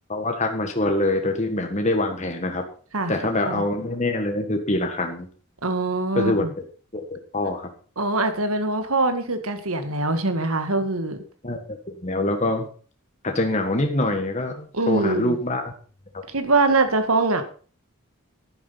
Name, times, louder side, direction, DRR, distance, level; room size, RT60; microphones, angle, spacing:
voice 1, 0.1-2.6 3.1-5.3 6.1-6.6 6.9-7.7 11.4-11.8 12.0-12.7 13.2-15.7, left 2 dB, 30° left, 4 dB, 1.6 m, -25 dB
voice 2, 5.6-6.5 8.0-11.2 14.7-15.4 16.3-17.4, right 2 dB, 75° right, 8 dB, 1.9 m, -23 dB
11.0 x 9.8 x 5.6 m, 0.42 s
head